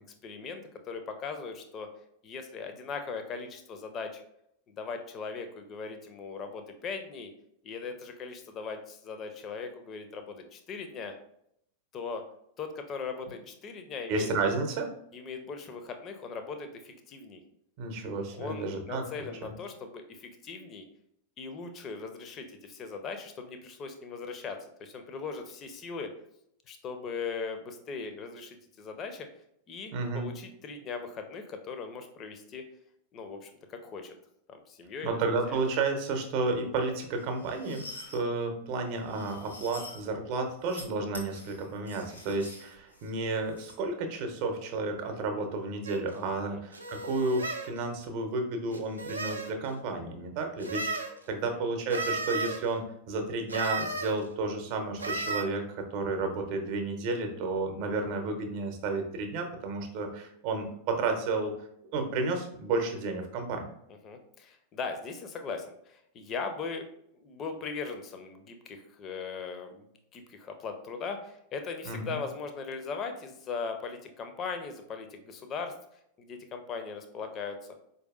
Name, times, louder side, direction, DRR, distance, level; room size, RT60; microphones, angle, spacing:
voice 1, 0.2-1.9 2.2-4.2 4.7-7.3 7.6-11.1 11.9-12.2 12.6-14.3 15.1-17.4 18.3-20.9 21.4-26.1 26.7-29.3 29.7-32.6 33.1-34.1 34.5-35.2 35.5-35.7 46.5-46.6 51.3-51.7 64.0-66.9 67.1-75.7 76.2-77.7, left 5 dB, 30° left, 6 dB, 0.5 m, -39 dB
voice 2, 14.1-14.9 17.8-19.5 29.9-30.3 35.0-55.6 55.9-61.5 61.9-63.7 71.8-72.2, right 3 dB, 45° right, 4 dB, 0.7 m, -32 dB
sound 1, 37.1-38.2 38.9-40.0 40.5-40.8 41.1-43.8, left 1 dB, 80° left, 1.0 m, -47 dB
sound 2, 45.9-46.0 46.7-47.7 48.7-49.5 50.6-51.1 51.9-52.6 53.5-54.1 55.0-55.4, right 3 dB, 80° right, 0.4 m, -34 dB
4.5 x 2.6 x 2.4 m, 0.74 s
figure-of-eight pair, 90°, 0 cm